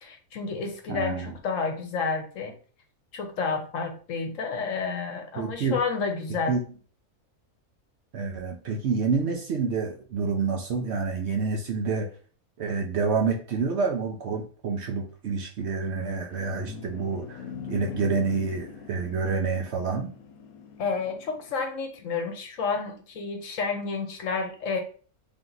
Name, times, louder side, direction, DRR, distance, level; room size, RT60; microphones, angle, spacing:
voice 1, 0.0-2.6 3.1-6.6 20.8-24.8, left 4 dB, 65° left, 5 dB, 1.1 m, -30 dB
voice 2, 0.9-1.3 5.4-5.8 6.5-6.6 8.1-12.1 12.6-20.1, right 5 dB, 60° right, 2 dB, 0.8 m, -28 dB
sound 1, 15.9-21.5, left 6 dB, 90° left, 1.1 m, -41 dB
3.5 x 2.8 x 3.8 m, 0.41 s
omnidirectional pair, 1.5 m